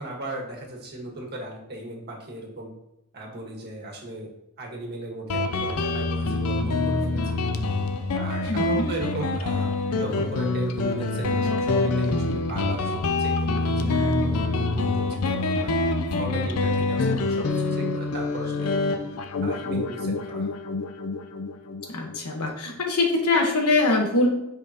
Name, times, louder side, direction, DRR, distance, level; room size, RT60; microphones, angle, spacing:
voice 1, 0.0-2.7 3.1-4.3 4.6-7.4 8.1-19.0 19.4-20.5, right 1 dB, 45° right, 0 dB, 1.6 m, -37 dB
Guitar, 5.3-22.5, left 3 dB, 75° left, 0.6 m, -26 dB
voice 2, 21.9-24.3, left 2 dB, 90° left, 2 dB, 1.3 m, -23 dB
8.8 x 5.1 x 2.9 m, 0.91 s
head